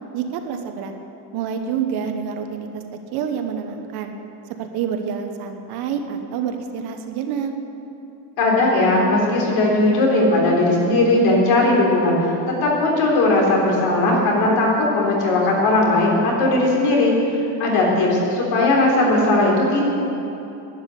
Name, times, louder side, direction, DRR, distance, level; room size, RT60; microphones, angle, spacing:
voice 1, 0.1-0.9 1.3-2.8 3.1-4.1 4.6-7.5, right 7 dB, 50° right, 5 dB, 1.1 m, -27 dB
voice 2, 8.4-12.3 12.6-17.1 17.6-19.8, left 2 dB, 50° left, -2 dB, 3.6 m, -18 dB
12.0 x 10.5 x 8.3 m, 2.9 s
cardioid pair, 180°, 48 cm